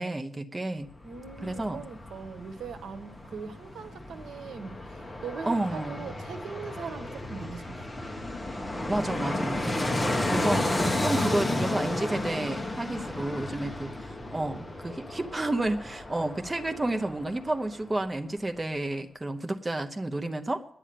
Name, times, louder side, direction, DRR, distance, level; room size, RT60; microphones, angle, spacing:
voice 1, 0.0-0.9 1.4-1.8 5.5-6.1 8.9-9.9 10.2-10.7 11.0-20.7, right 2 dB, 15° right, 5 dB, 0.8 m, -31 dB
Fixed-wing aircraft airplane, 0.9-17.8 18.1-18.2, left 1 dB, 10° left, 1.0 m, -33 dB
voice 2, 1.0-4.8 5.2-7.8 9.9-10.2, right 5 dB, 80° right, 10 dB, 1.1 m, -41 dB
10.0 x 8.9 x 8.4 m, 0.72 s
wide cardioid pair, 140°, 0 cm